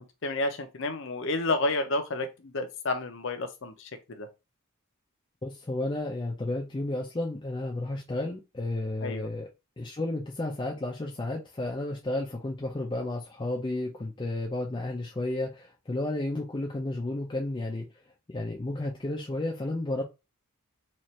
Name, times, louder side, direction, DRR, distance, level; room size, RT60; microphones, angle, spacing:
voice 1, 0.2-4.3 9.0-9.3, left 2 dB, 55° left, 0.7 m, -30 dB
voice 2, 5.4-9.5 9.8-17.9 18.3-20.0, left 2 dB, 20° left, 0.4 m, -32 dB
4.2 x 2.5 x 3.1 m
head